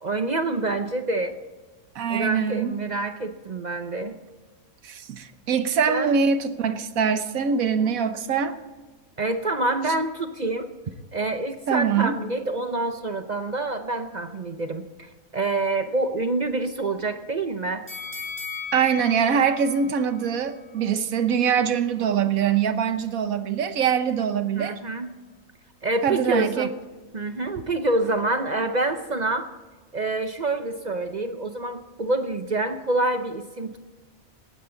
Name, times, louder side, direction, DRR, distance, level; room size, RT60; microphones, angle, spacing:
voice 1, 0.0-1.4 2.1-4.2 5.9-6.1 9.2-10.7 11.1-17.8 24.6-25.1 25.8-26.7 27.1-29.5 29.9-33.8, right 2 dB, 40° right, 8 dB, 0.6 m, -27 dB
voice 2, 1.9-2.7 4.8-8.6 11.7-12.1 18.7-24.7 26.0-26.7, right 7 dB, 75° right, 11 dB, 1.4 m, -23 dB
sound 1, 17.9-21.0 21.4-21.5, left 5 dB, 10° left, 4.5 m, -37 dB
18.0 x 13.0 x 3.8 m, 1.3 s
omnidirectional pair, 1.5 m